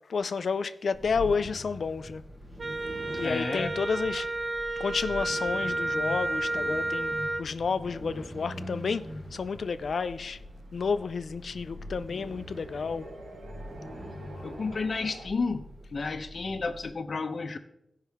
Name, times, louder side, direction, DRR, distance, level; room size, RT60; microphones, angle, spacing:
voice 1, 0.1-2.2 3.2-4.3 4.8-10.4 10.7-13.1 14.4-14.5, left 5 dB, 80° left, 0.4 m, -31 dB
sound 1, 0.9-16.9, equal, 15° right, 1.2 m, -43 dB
Wind instrument woodwind instrument, 2.6-7.5, right 2 dB, 40° right, 0.4 m, -31 dB
voice 2, 3.2-3.7 14.4-15.7 15.9-17.6, left 4 dB, 55° left, 0.7 m, -31 dB
sound 2, 8.2-15.3, right 1 dB, 85° right, 1.3 m, -50 dB
15.5 x 5.5 x 3.5 m
wide cardioid pair, 105°, 0 cm